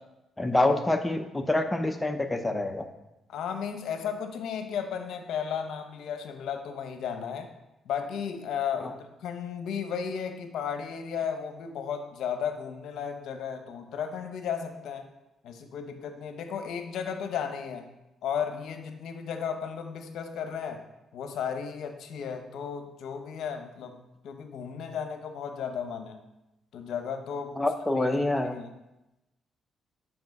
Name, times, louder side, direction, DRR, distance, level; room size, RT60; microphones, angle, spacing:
voice 1, 0.4-2.9 27.6-28.6, left 2 dB, 10° left, 5 dB, 0.6 m, -26 dB
voice 2, 3.3-7.5 7.9-15.1 15.4-17.9 18.2-20.9 21.1-24.0 24.2-26.2 26.7-27.6 27.9-28.1 28.5-28.7, left 7 dB, 75° left, 6 dB, 0.8 m, -34 dB
5.9 x 4.9 x 5.3 m, 0.96 s
cardioid pair, 90°, 0 cm